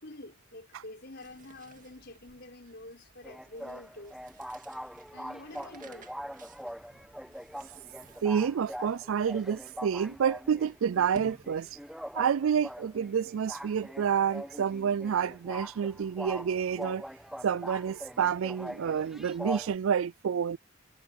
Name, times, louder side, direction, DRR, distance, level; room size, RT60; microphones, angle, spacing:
voice 1, 0.0-4.2 5.1-6.1, left 2 dB, 50° left, 5.3 m, -47 dB
sound 1, 0.9-12.1, right 2 dB, 40° right, 2.2 m, -56 dB
sound 2, 3.2-19.8, equal, ahead, 1.6 m, -43 dB
voice 2, 8.2-11.7 12.1-17.0 17.4-20.6, right 7 dB, 75° right, 0.4 m, -29 dB
head